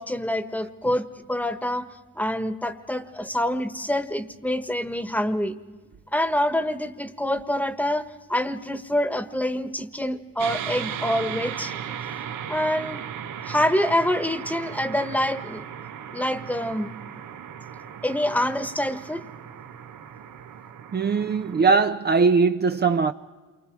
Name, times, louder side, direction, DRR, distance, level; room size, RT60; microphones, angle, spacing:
voice 1, 0.0-1.9 2.2-5.6 6.1-11.7 12.5-13.0 13.4-15.6 16.1-16.9 18.0-19.2, left 1 dB, 5° left, 1.3 m, -26 dB
sound 1, 10.4-21.6, right 9 dB, 80° right, 1.3 m, -36 dB
voice 2, 20.9-23.1, right 4 dB, 35° right, 0.6 m, -20 dB
28.5 x 24.5 x 4.7 m
cardioid pair, 90°, 30 cm